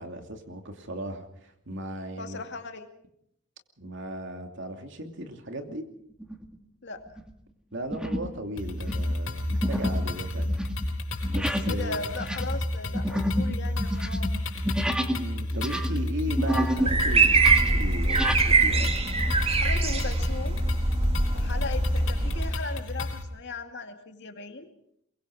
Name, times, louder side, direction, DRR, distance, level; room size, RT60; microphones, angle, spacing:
voice 1, 0.0-2.4 3.8-5.8 7.7-10.6 11.3-12.0 15.1-19.0, right 1 dB, 65° right, 5 dB, 2.7 m, -37 dB
voice 2, 2.2-2.9 6.8-7.1 11.6-14.3 19.6-20.6 21.3-24.7, left 3 dB, 60° left, 5 dB, 2.3 m, -37 dB
sound 1, 6.2-6.6 7.1-7.3 7.9-8.4 8.7-15.2 15.5-16.9 17.2-18.4, equal, 5° right, 2.0 m, -30 dB
sound 2, 8.6-23.2, left 1 dB, 80° left, 4.1 m, -31 dB
sound 3, 16.8-22.5, right 3 dB, 30° right, 1.8 m, -23 dB
23.5 x 23.0 x 4.9 m, 0.71 s
head